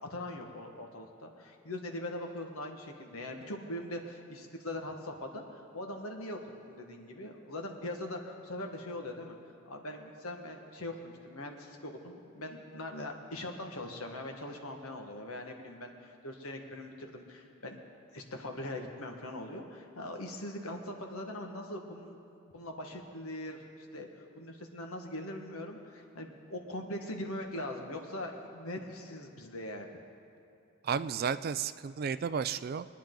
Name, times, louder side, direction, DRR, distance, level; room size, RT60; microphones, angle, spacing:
voice 1, 0.0-9.4 9.7-17.8 18.1-22.2 22.5-24.1 24.3-29.9, left 1 dB, 85° left, 3 dB, 1.5 m, -41 dB
voice 2, 30.8-32.9, right 6 dB, 45° right, 14 dB, 0.3 m, -33 dB
22.0 x 10.0 x 3.9 m, 2.7 s
head